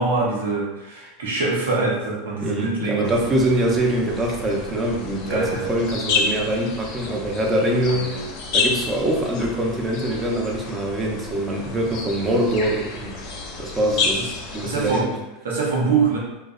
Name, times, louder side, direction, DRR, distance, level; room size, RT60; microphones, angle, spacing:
voice 1, 0.0-3.3 5.2-5.7 7.9-8.3 12.0-12.1 13.9-14.3 14.6-15.1 15.4-16.2, right 4 dB, 85° right, -3 dB, 0.7 m, -24 dB
voice 2, 2.4-8.2 8.5-13.2 13.6-14.2 14.5-15.1, right 1 dB, 25° right, 0 dB, 0.6 m, -23 dB
sound 1, 3.0-15.0, left 4 dB, 60° left, 0.5 m, -30 dB
2.5 x 2.0 x 2.4 m, 0.99 s
hypercardioid pair, 100°, 0 cm